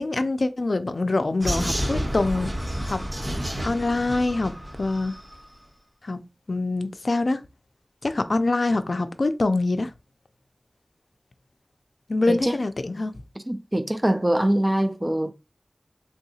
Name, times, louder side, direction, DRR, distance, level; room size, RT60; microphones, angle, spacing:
voice 1, 0.0-2.5 2.8-3.0 3.6-4.5 4.8-5.1 6.0-6.2 6.5-7.4 8.0-9.9 12.1-13.1, left 2 dB, 80° left, 0.4 m, -24 dB
Vehicle, 1.4-5.3, equal, 60° right, 1.3 m, -30 dB
voice 2, 13.5-15.3, right 1 dB, 20° right, 0.4 m, -23 dB
3.5 x 2.7 x 2.7 m
wide cardioid pair, 60°, 0 cm